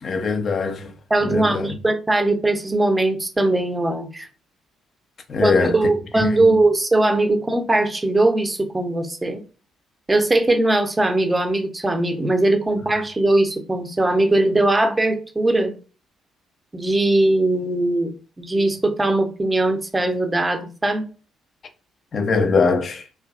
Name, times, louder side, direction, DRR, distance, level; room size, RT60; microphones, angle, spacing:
voice 1, 0.0-0.9 1.2-1.7 5.3-5.8 6.5-6.6 12.9-13.0 22.1-23.0, left 4 dB, 45° left, 0.6 m, -21 dB
voice 2, 1.1-4.3 5.4-9.4 10.1-15.7 16.7-21.0, right 2 dB, 20° right, 0.7 m, -20 dB
2.6 x 2.3 x 2.3 m
hypercardioid pair, 45°, 0 cm